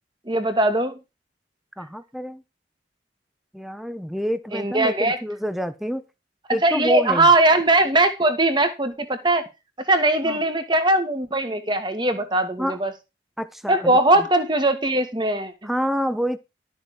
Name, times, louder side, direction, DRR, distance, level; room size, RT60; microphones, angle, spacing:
voice 1, 0.3-1.0 4.5-5.2 6.6-9.5 9.9-12.9 13.7-15.7, right 2 dB, 25° right, 1.9 m, -20 dB
voice 2, 1.8-2.4 3.5-6.0 6.5-7.3 10.2-10.4 12.6-12.8 13.4-14.3 15.6-16.4, equal, ahead, 1.0 m, -27 dB
12.5 x 7.2 x 5.1 m
head